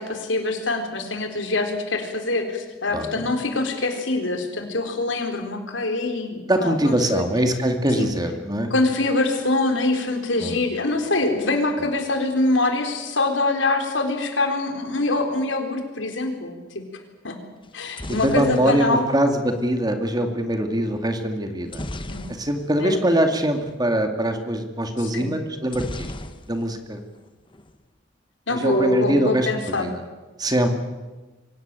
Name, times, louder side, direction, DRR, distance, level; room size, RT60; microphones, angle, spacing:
voice 1, 0.0-7.2 8.0-8.1 8.7-16.8 17.2-17.4 17.7-19.1 22.1-22.3 22.8-23.0 25.0-25.3 28.5-29.9, left 2 dB, 80° left, 5 dB, 4.1 m, -24 dB
voice 2, 2.9-3.2 6.5-8.7 10.4-10.5 18.1-21.9 22.4-26.1 26.5-27.0 28.5-30.0 30.4-30.7, right 1 dB, 20° right, 6 dB, 2.4 m, -23 dB
sound 1, 17.6-19.8 21.7-22.9 23.2-23.3 23.5-23.8 25.7-26.9 27.2-27.8, left 1 dB, 25° left, 1.3 m, -36 dB
25.0 x 18.0 x 9.0 m, 1.2 s
head